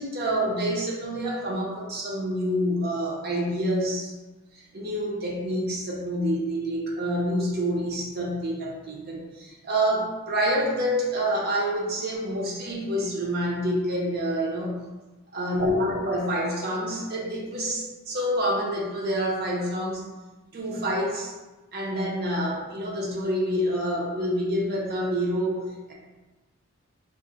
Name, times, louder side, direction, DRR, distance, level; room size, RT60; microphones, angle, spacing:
voice 1, 0.0-4.1 4.7-14.8 15.3-20.0 20.5-21.3 21.7-25.9, equal, 45° right, -1 dB, 0.6 m, -27 dB
2.4 x 2.1 x 3.8 m, 1.1 s
head